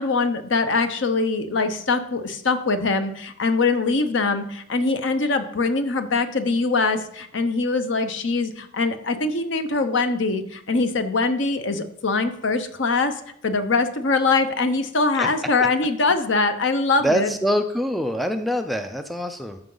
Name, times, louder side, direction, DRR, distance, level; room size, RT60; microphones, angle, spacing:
voice 1, 0.0-13.1 13.4-17.3, left 3 dB, 70° left, 9 dB, 0.8 m, -23 dB
voice 2, 17.0-19.6, equal, ahead, 7 dB, 0.4 m, -24 dB
13.0 x 5.8 x 3.9 m, 0.71 s
head